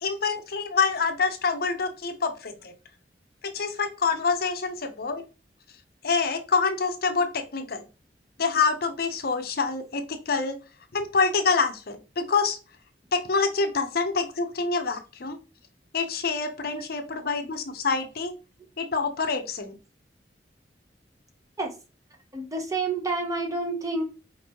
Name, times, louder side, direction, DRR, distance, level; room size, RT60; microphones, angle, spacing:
voice 1, 0.0-2.7 3.4-5.2 6.0-7.8 8.4-10.6 10.9-12.6 13.1-15.4 15.9-18.3 18.8-19.8, left 4 dB, 60° left, 7 dB, 0.7 m, -26 dB
voice 2, 16.7-17.1 21.6-21.7 22.3-24.0, right 3 dB, 20° right, 3 dB, 0.9 m, -29 dB
4.5 x 3.9 x 3.0 m, 0.31 s
head